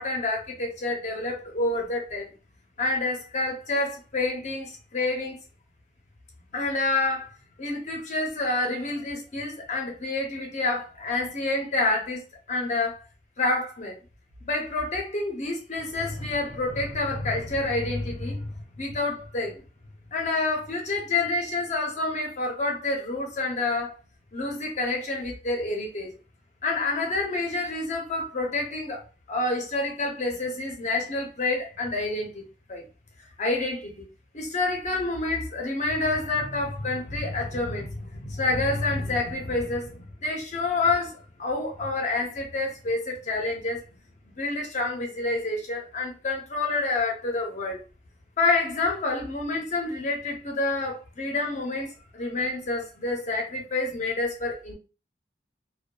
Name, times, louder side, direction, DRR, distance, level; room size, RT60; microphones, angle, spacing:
voice 1, 0.0-2.3 2.8-5.4 6.5-7.3 7.6-12.2 12.5-13.0 13.4-14.0 14.4-19.6 20.1-23.9 24.3-26.2 26.6-29.0 29.3-32.4 32.7-32.8 33.4-34.1 34.3-43.8 44.4-47.8 48.4-54.7, left 2 dB, 45° left, 0.7 m, -28 dB
2.6 x 2.2 x 2.2 m
head